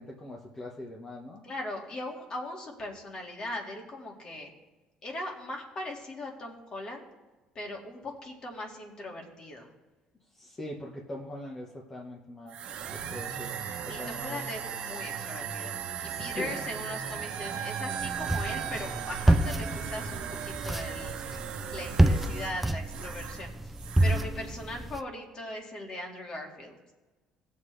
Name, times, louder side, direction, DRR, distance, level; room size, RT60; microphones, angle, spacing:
voice 1, 0.0-1.4 10.4-12.6 13.1-14.4 16.0-16.5, left 1 dB, 20° left, -2 dB, 1.3 m, -41 dB
voice 2, 1.4-4.5 5.0-7.1 7.5-9.7 13.9-15.7 16.0-21.2 21.7-23.7 24.0-26.8, left 1 dB, 35° left, 1 dB, 2.1 m, -39 dB
sound 1, 12.5-23.5 23.7-24.3, right 8 dB, 60° right, 1.1 m, -37 dB
sound 2, 18.0-25.0, right 1 dB, 5° right, 0.4 m, -28 dB
18.0 x 7.4 x 3.4 m, 1.2 s
cardioid pair, 130°, 2 cm